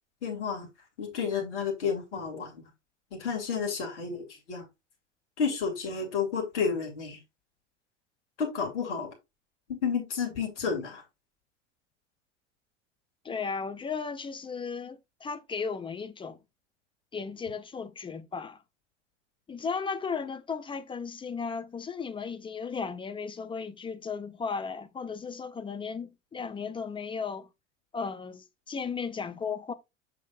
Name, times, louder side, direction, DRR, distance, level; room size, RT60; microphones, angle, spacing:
voice 1, 0.2-0.7 1.0-2.7 3.1-4.6 5.4-7.2 8.4-9.1 9.7-11.0, left 6 dB, 70° left, 2.7 m, -31 dB
voice 2, 13.2-16.4 17.1-18.6 19.5-27.5 27.9-29.7, left 5 dB, 15° left, 0.5 m, -35 dB
6.8 x 6.3 x 2.4 m
figure-of-eight pair, 75°, 37 cm